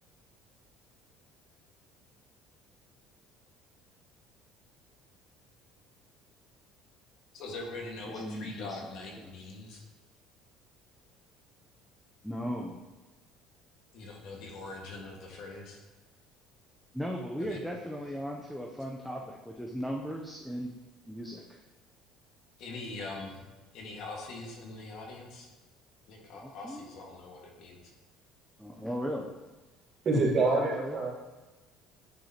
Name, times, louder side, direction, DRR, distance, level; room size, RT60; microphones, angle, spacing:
voice 1, 7.3-9.8 13.9-15.8 17.4-17.6 22.6-23.4 23.7-25.5 26.1-27.9, left 2 dB, 60° left, -1 dB, 1.7 m, -42 dB
voice 2, 8.0-8.8 9.2-9.3 12.2-12.8 16.9-20.7 21.1-21.6 26.4-26.8 28.6-29.3 30.1-31.0, equal, ahead, -1 dB, 0.6 m, -37 dB
voice 3, 30.1-31.1, right 3 dB, 40° right, -3 dB, 1.7 m, -26 dB
9.2 x 4.6 x 2.9 m, 1.2 s
cardioid pair, 135°, 0 cm